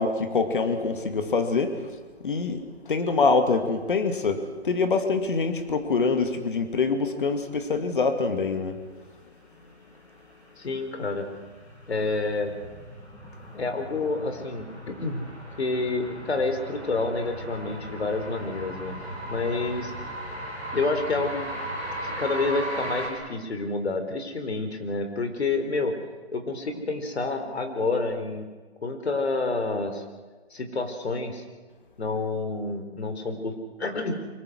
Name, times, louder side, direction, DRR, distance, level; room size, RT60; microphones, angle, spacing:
voice 1, 0.0-1.9 2.2-2.6 2.9-8.8, left 4 dB, 50° left, 8 dB, 2.4 m, -25 dB
sound 1, 10.3-23.1, right 1 dB, 5° left, 2.1 m, -37 dB
voice 2, 10.6-11.3 11.9-12.5 13.5-15.3 15.6-18.9 19.3-19.9 20.7-21.6 22.0-25.9 26.3-28.5 28.8-30.0 30.5-31.4 32.0-34.1, left 3 dB, 70° left, 6 dB, 4.3 m, -28 dB
24.0 x 23.0 x 6.4 m, 1.3 s
hypercardioid pair, 175°, 33 cm